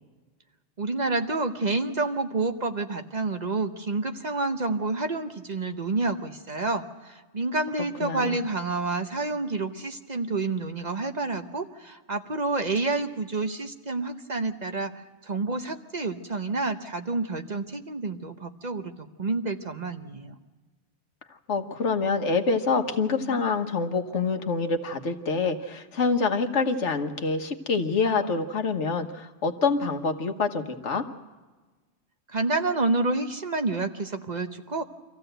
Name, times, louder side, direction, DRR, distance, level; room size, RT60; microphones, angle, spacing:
voice 1, 0.8-14.9 15.2-20.3 32.3-34.8, right 3 dB, 40° right, 7 dB, 0.9 m, -29 dB
voice 2, 8.0-8.4 21.5-31.0, left 4 dB, 80° left, 6 dB, 1.5 m, -26 dB
25.0 x 15.0 x 7.9 m, 1.3 s
omnidirectional pair, 1.2 m